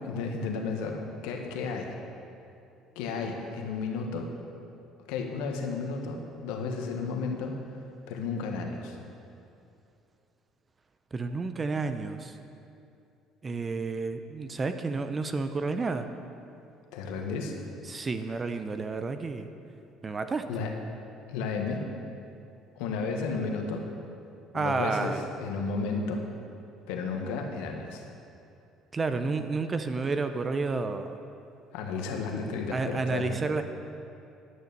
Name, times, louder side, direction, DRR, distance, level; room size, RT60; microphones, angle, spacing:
voice 1, 0.0-1.9 2.9-4.3 5.1-7.6 8.1-9.0 16.9-17.5 20.5-20.7 21.3-21.8 22.7-23.9 24.5-26.2 26.9-28.0 31.7-33.4, left 4 dB, 85° left, 2 dB, 1.3 m, -33 dB
voice 2, 11.1-12.3 13.4-16.1 17.9-19.5 20.0-20.4 24.5-25.2 28.9-31.1 32.7-33.6, right 4 dB, 30° right, 8 dB, 0.7 m, -30 dB
11.0 x 6.8 x 6.7 m, 2.6 s
supercardioid pair, 90°, 0 cm